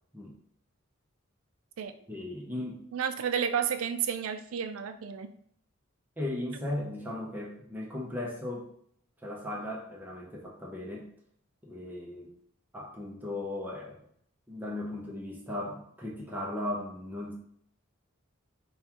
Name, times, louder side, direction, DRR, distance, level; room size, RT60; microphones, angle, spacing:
voice 1, 2.1-2.8 6.2-8.7 9.2-11.1 11.6-12.3 12.7-14.0 14.5-17.3, left 1 dB, 10° right, -2 dB, 0.6 m, -37 dB
voice 2, 2.9-5.3, right 7 dB, 90° right, 9 dB, 0.4 m, -31 dB
5.3 x 2.3 x 2.8 m, 0.66 s
head